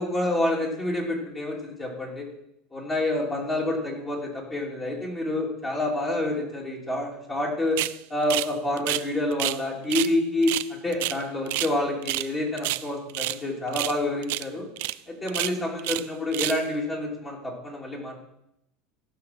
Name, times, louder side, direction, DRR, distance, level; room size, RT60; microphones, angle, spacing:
voice 1, 0.0-2.2 2.7-7.8 8.1-14.6 15.1-18.2, left 1 dB, 20° left, -2 dB, 2.8 m, -28 dB
sound 1, 7.8-8.0 8.3-8.5 8.8-9.6 9.9-10.1 10.4-11.7 12.0-12.3 12.6-13.4 13.7-14.0 14.2-14.5 14.8-14.9 15.3-16.1 16.3-16.6, right 18 dB, 75° right, 0.4 m, -29 dB
16.5 x 6.2 x 5.9 m, 0.81 s
supercardioid pair, 145°, 0 cm